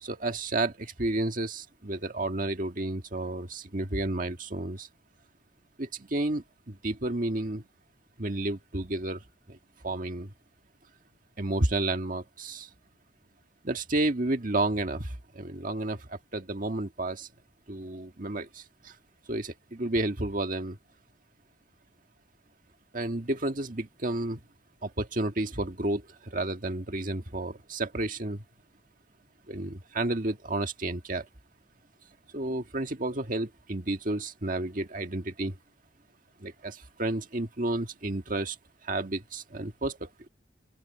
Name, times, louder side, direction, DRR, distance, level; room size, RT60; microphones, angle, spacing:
voice 1, 0.0-4.9 5.8-7.6 8.2-9.6 9.8-10.3 11.4-12.7 13.6-17.3 17.7-19.0 19.3-20.8 22.9-24.4 24.8-28.4 29.5-31.3 32.3-35.6 36.4-38.6 38.8-40.3, right 2 dB, 45° right, 1.7 m, -31 dB
open air
head